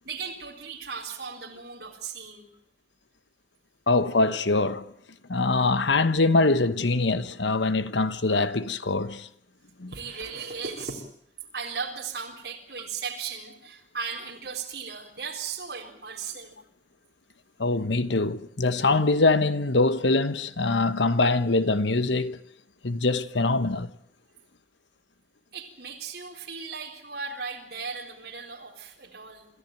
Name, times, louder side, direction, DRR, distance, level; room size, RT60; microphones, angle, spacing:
voice 1, 0.0-2.4 9.9-11.0 11.5-16.6 25.5-29.5, right 5 dB, 60° right, 4.0 m, -36 dB
voice 2, 3.9-4.8 5.3-9.3 9.8-9.9 17.6-22.4 22.8-23.9, left 3 dB, 85° left, 1.2 m, -23 dB
27.0 x 14.5 x 9.0 m
head